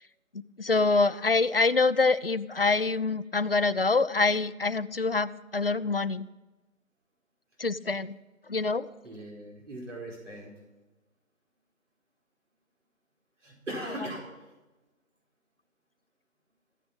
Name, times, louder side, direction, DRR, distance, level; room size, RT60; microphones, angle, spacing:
voice 1, 0.6-6.3 7.6-8.1 8.5-8.9, left 3 dB, 45° left, 13 dB, 0.5 m, -25 dB
voice 2, 9.0-10.5 13.4-14.3, right 1 dB, 60° right, -2 dB, 4.7 m, -39 dB
15.0 x 10.0 x 8.9 m, 1.1 s
hypercardioid pair, 175°, 42 cm